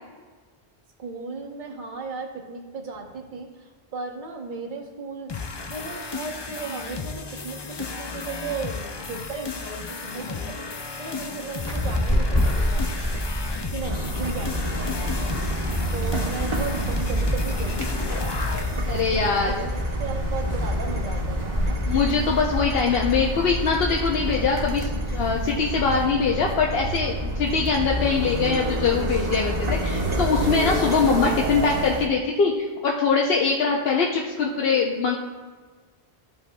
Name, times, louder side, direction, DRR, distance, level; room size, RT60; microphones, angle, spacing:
voice 1, 1.0-3.5 3.9-5.4 5.7-7.6 8.0-10.7 11.0-13.2 13.7-15.1 15.9-17.9 18.9-21.8, right 4 dB, 50° right, 1 dB, 1.1 m, -35 dB
sound 1, 5.3-18.9, left 4 dB, 45° left, 0.3 m, -34 dB
sound 2, 11.6-25.4, equal, 20° left, 1.4 m, -29 dB
sound 3, 13.8-32.1, equal, 30° right, 0.9 m, -28 dB
voice 2, 18.8-19.7 21.9-35.2, left 5 dB, 70° left, -1 dB, 0.9 m, -23 dB
13.0 x 5.5 x 2.2 m, 1.4 s
omnidirectional pair, 1.0 m